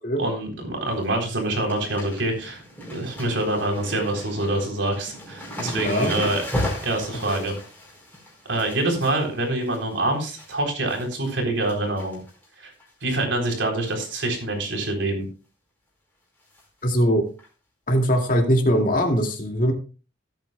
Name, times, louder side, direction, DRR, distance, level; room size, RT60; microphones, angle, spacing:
voice 1, 0.2-2.6 2.9-6.4 6.8-7.5 8.5-12.2 12.6-12.7 13.0-15.3, right 2 dB, 75° right, 2 dB, 3.9 m, -25 dB
sound 1, 0.7-1.1 1.3-10.5 10.9-11.3 11.6-12.5 12.8-12.9 13.8-14.1 14.4-14.5 14.9-15.0 16.5-16.6 17.4-17.5, left 1 dB, 10° left, 4.6 m, -35 dB
voice 2, 5.6-6.1 7.1-7.4 16.8-17.2 17.9-19.7, equal, 45° left, 2 dB, 2.4 m, -21 dB
18.0 x 8.8 x 2.3 m, 0.35 s
head